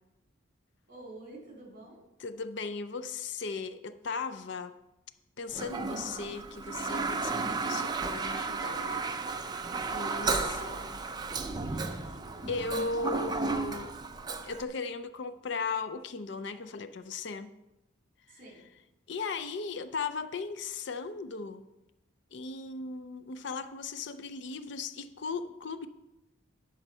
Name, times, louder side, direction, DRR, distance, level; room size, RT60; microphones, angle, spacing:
voice 1, 0.9-2.0 12.1-12.6 18.3-18.6, right 2 dB, 40° right, 3.4 m, -49 dB
voice 2, 2.2-4.8 5.4-9.0 9.4-9.6 9.9-11.0 11.7-12.0 12.5-13.9 14.4-17.5 18.3-18.4 19.1-21.6 22.3-25.9, left 4 dB, 55° left, 0.5 m, -37 dB
Toilet flush, 5.5-14.6, right 4 dB, 20° right, 0.4 m, -33 dB
11.0 x 6.5 x 5.5 m
head